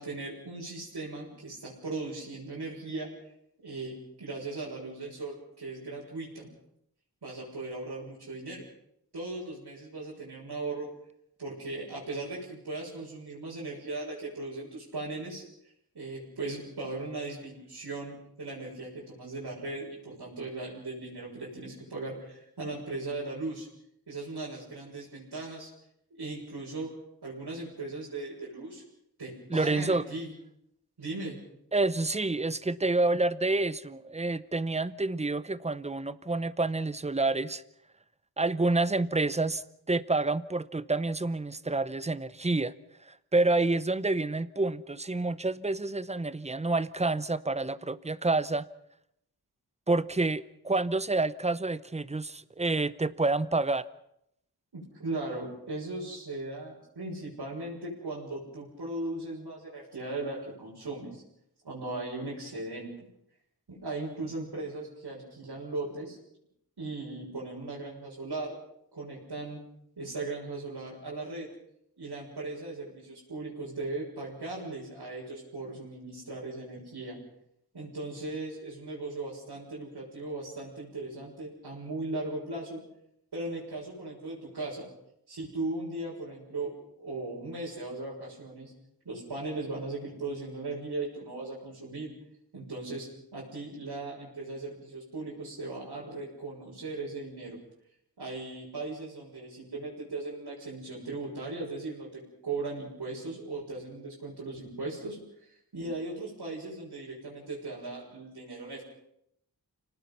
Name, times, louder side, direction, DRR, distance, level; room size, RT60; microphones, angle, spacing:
voice 1, 0.0-3.1 3.6-6.5 7.2-8.6 9.1-10.9 11.4-15.4 15.9-23.7 24.1-25.7 26.2-26.9 27.2-28.8 29.2-30.3 31.0-31.5 54.7-61.2 61.6-62.9 63.7-66.2 66.8-68.5 68.9-69.6 70.0-71.5 72.0-77.2 77.7-82.8 83.3-84.9 85.3-88.7 89.0-92.1 92.5-97.6 98.2-108.8, right 2 dB, 90° right, -7 dB, 6.7 m, -38 dB
voice 2, 29.5-30.0 31.7-37.6 38.4-42.7 43.1-48.7 49.9-53.9, right 2 dB, 15° right, 16 dB, 0.8 m, -28 dB
29.0 x 19.0 x 5.7 m, 0.76 s
wide cardioid pair, 95°, 38 cm